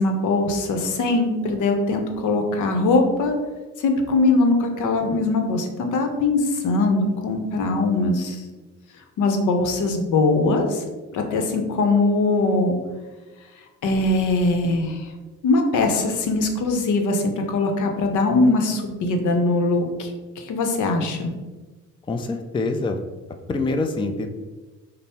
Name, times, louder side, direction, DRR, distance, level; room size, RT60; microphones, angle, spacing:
voice 1, 0.0-3.4 3.8-8.4 9.2-10.9 11.1-12.8 13.8-15.1 15.4-21.3, left 2 dB, 80° left, 4 dB, 0.8 m, -21 dB
voice 2, 22.1-23.0 23.5-24.3, left 3 dB, 15° left, 6 dB, 0.4 m, -25 dB
5.2 x 2.0 x 4.2 m, 1.2 s
cardioid pair, 90°, 30 cm